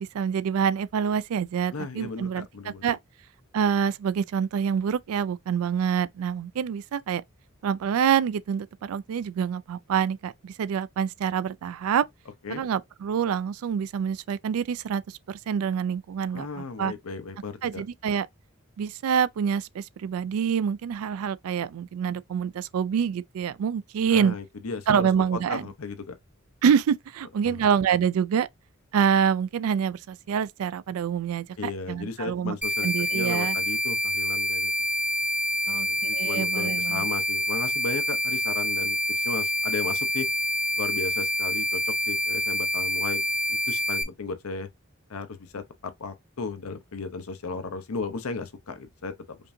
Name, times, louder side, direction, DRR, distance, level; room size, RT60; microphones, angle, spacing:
voice 1, 0.0-3.0 3.5-7.2 7.6-12.1 12.5-16.9 17.6-18.3 18.8-24.4 24.9-25.7 26.6-28.5 28.9-32.6 32.8-33.6 35.7-35.9 36.1-37.1, right 7 dB, 80° right, 0.3 m, -26 dB
voice 2, 1.7-2.9 12.4-12.6 16.3-17.8 24.1-26.2 27.4-27.7 31.6-34.7 35.7-40.3 40.8-43.2 43.5-44.7 45.1-45.6 46.0-49.4, left 4 dB, 90° left, 0.8 m, -35 dB
sound 1, 32.6-44.0, equal, 5° right, 0.6 m, -27 dB
5.2 x 2.6 x 2.6 m
head